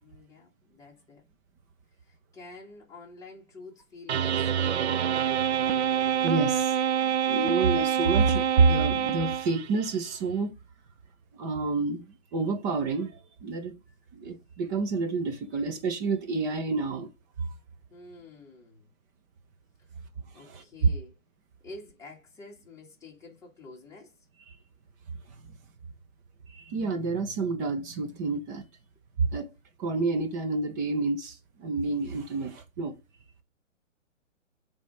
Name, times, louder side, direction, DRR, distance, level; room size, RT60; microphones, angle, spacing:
voice 1, 0.0-1.2 2.1-5.0 17.9-18.9 20.3-21.2 21.6-24.1, left 3 dB, 10° left, 2.0 m, -48 dB
sound 1, 4.1-9.9, right 9 dB, 55° right, 0.6 m, -26 dB
voice 2, 6.2-6.7 7.0-10.5 11.4-13.7 14.1-17.1 17.4-17.5 20.5-20.6 24.5-24.6 26.5-28.6 29.2-29.5 29.8-33.0, right 4 dB, 15° right, 0.6 m, -28 dB
8.2 x 3.5 x 5.0 m
hypercardioid pair, 140°, 39 cm